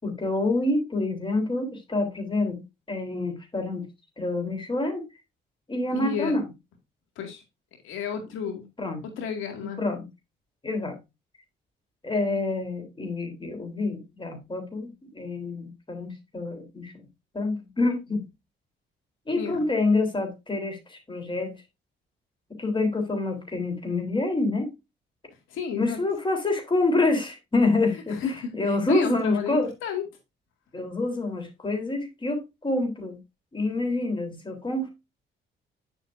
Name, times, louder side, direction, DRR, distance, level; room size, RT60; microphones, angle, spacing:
voice 1, 0.0-2.6 2.9-3.9 4.2-5.1 5.7-6.5 8.8-9.0 9.8-10.0 10.6-11.0 12.0-16.9 17.3-18.2 19.3-21.5 22.6-24.7 25.8-28.2 28.5-29.7 30.7-33.2 33.5-34.9, left 2 dB, 25° left, 3.7 m, -27 dB
voice 2, 5.9-6.3 7.2-7.4 7.8-8.7 9.0-9.8 19.3-19.6 25.5-26.0 27.9-30.1, left 7 dB, 90° left, 2.1 m, -32 dB
9.7 x 7.2 x 2.6 m
cardioid pair, 90°, 20 cm